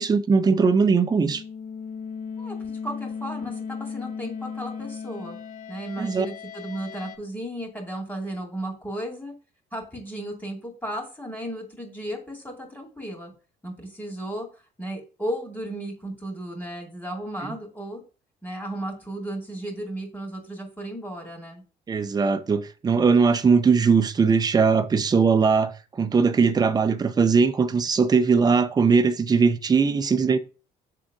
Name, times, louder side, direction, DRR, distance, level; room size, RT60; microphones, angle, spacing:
voice 1, 0.0-1.4 6.0-6.3 17.4-17.5 21.9-30.4, right 5 dB, 25° right, 0.6 m, -20 dB
sound 1, 0.9-7.2, left 6 dB, 50° left, 1.2 m, -36 dB
voice 2, 2.4-5.4 5.7-9.3 9.7-13.3 13.6-18.0 18.4-21.6, right 1 dB, 10° left, 2.4 m, -34 dB
7.6 x 3.7 x 3.6 m
cardioid pair, 110°, 17 cm